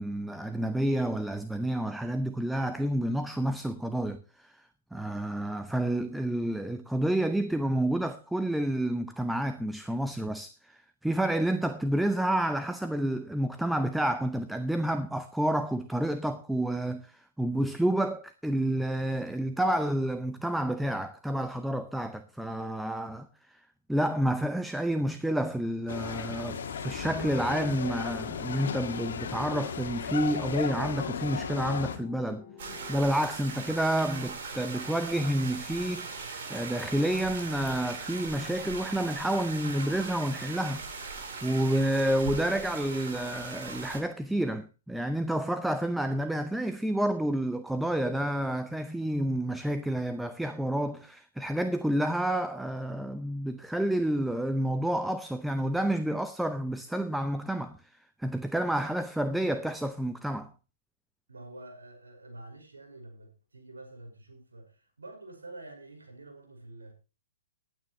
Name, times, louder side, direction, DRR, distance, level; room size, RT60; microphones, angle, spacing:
voice 1, 0.0-4.5 4.9-23.3 23.9-32.4 32.9-40.8 41.4-57.8 58.2-60.5, right 1 dB, ahead, 0.6 m, -29 dB
sound 1, 25.9-32.0, left 7 dB, 60° left, 1.8 m, -35 dB
sound 2, 28.6-34.3, left 7 dB, 20° left, 3.3 m, -50 dB
sound 3, 32.6-44.0, right 4 dB, 50° right, 4.2 m, -39 dB
voice 2, 61.3-66.9, right 2 dB, 80° right, 5.4 m, -48 dB
19.0 x 9.1 x 3.1 m
figure-of-eight pair, 120°, 0 cm